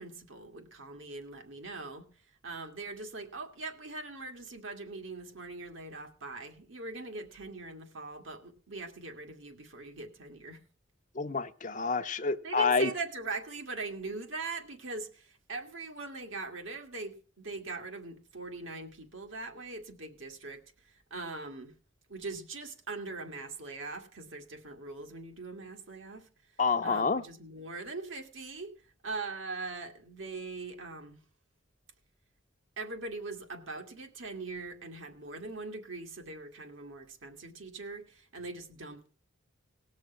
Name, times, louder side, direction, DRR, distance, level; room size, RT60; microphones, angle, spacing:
voice 1, 0.0-2.1 2.4-10.6 12.4-21.7 22.1-26.3 26.8-31.2 32.8-39.1, right 3 dB, 75° right, 2.0 m, -41 dB
voice 2, 11.1-12.9 26.6-27.2, left 4 dB, 40° left, 0.6 m, -28 dB
18.5 x 6.4 x 5.7 m
head